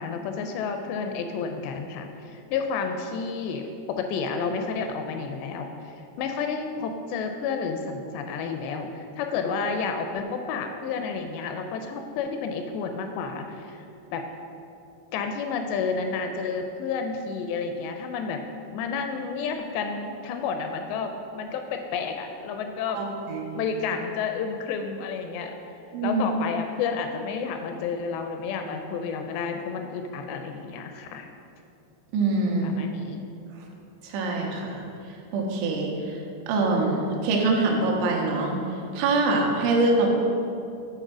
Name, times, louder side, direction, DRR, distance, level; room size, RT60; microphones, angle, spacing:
voice 1, 0.0-13.9 14.1-14.2 15.1-18.4 18.7-23.0 23.6-25.5 26.0-31.3 32.6-33.2, left 5 dB, 85° left, 5 dB, 2.5 m, -31 dB
voice 2, 22.9-23.6 25.9-26.3 32.1-32.8 34.0-36.2 36.5-38.6 38.9-40.1, right 3 dB, 85° right, 0 dB, 3.4 m, -24 dB
9.1 x 4.3 x 6.0 m, 2.7 s
omnidirectional pair, 5.2 m